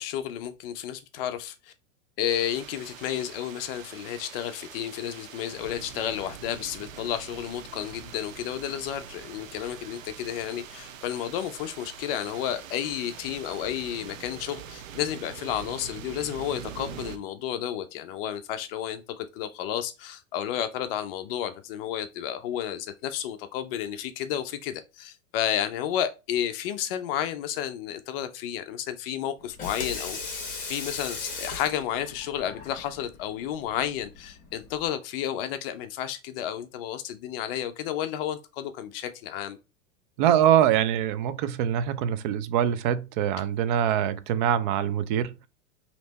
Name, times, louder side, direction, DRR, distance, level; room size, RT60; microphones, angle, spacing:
voice 1, 0.0-1.7 2.2-30.4 30.7-39.6, left 10 dB, 45° left, 0.5 m, -32 dB
sound 1, 2.3-17.2, right 8 dB, 80° right, 0.7 m, -44 dB
Water tap faucet / Sink (filling or washing), 29.4-34.9, left 4 dB, 20° left, 1.4 m, -38 dB
voice 2, 40.2-45.5, right 10 dB, 40° right, 0.4 m, -24 dB
3.2 x 2.9 x 3.9 m
hypercardioid pair, 125°, 40 cm